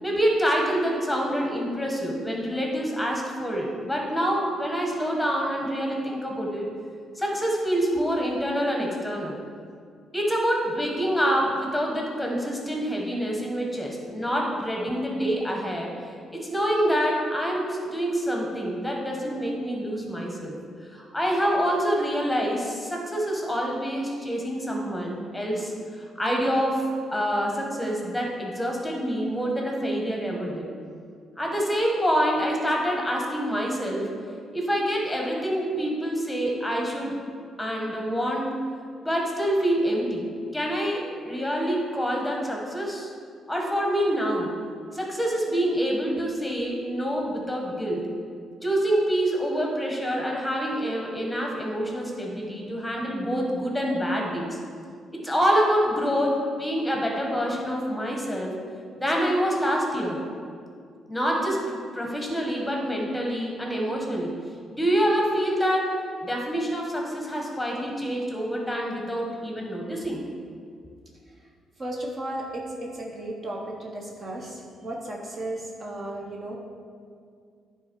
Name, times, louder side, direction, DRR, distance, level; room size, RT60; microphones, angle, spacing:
voice 1, 0.0-6.7 7.1-9.4 10.1-15.9 16.3-20.6 20.9-30.7 31.4-34.1 34.5-37.2 37.6-38.5 39.0-40.2 40.5-43.1 43.5-44.5 44.9-48.1 48.6-54.6 55.1-58.5 59.0-60.2 61.1-64.3 64.7-65.9 66.2-70.2, equal, 5° left, -1 dB, 1.4 m, -26 dB
voice 2, 71.8-76.6, right 1 dB, 40° right, -1 dB, 1.0 m, -34 dB
9.6 x 3.8 x 4.6 m, 2.2 s
cardioid pair, 90°, 0 cm